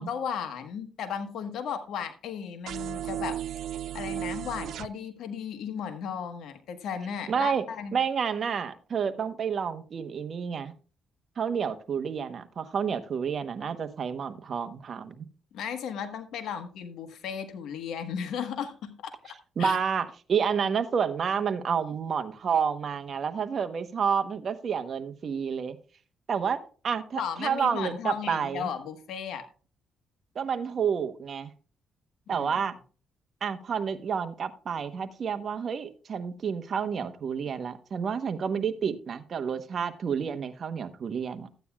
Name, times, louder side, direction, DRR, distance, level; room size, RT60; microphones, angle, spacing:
voice 1, 0.0-3.4 3.9-8.0 15.5-19.3 19.6-19.8 27.2-29.5 32.3-32.5, left 7 dB, 80° left, 8 dB, 1.3 m, -35 dB
sound 1, 2.7-4.9, right 11 dB, 75° right, 0.3 m, -34 dB
voice 2, 7.3-7.6 7.9-10.7 11.4-15.3 19.6-25.8 26.3-26.6 26.8-28.7 30.3-31.5 32.3-32.7 33.4-41.5, right 7 dB, 50° right, 9 dB, 1.0 m, -29 dB
14.0 x 9.3 x 2.4 m, 0.38 s
cardioid pair, 90°, 0 cm